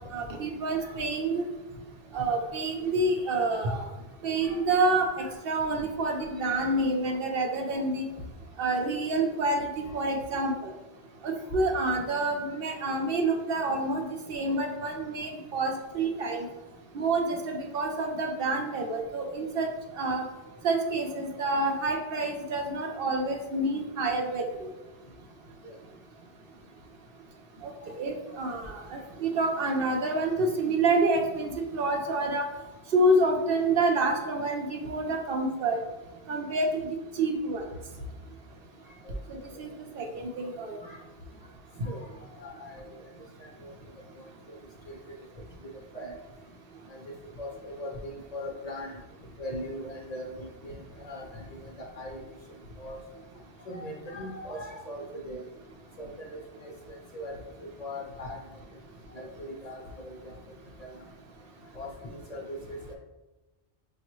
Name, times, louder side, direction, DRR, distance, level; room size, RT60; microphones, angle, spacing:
voice 1, 0.1-1.4 2.1-3.9 4.2-5.1 5.4-8.1 8.6-10.5 11.2-16.4 16.9-19.7 20.0-20.2 20.6-24.7 27.6-32.5 32.9-35.8 36.3-36.8 37.2-37.6 39.6-39.7 40.0-40.8, right 2 dB, 65° right, 3 dB, 0.7 m, -28 dB
voice 2, 3.2-3.8 4.4-4.9 5.2-5.3 6.5-6.7 11.8-11.9 25.6-25.7 40.8-41.0 41.8-43.1 43.4-43.7 44.2-44.3 44.9-45.0 45.6-46.1 46.9-47.0 47.4-49.0 49.4-52.2 52.8-53.0 53.7-55.5 56.0-57.3 57.8-58.4 59.1-60.3 60.8-60.9 61.7-62.9, left 1 dB, 45° left, 0 dB, 0.7 m, -40 dB
5.9 x 2.3 x 3.0 m, 1.1 s
omnidirectional pair, 1.1 m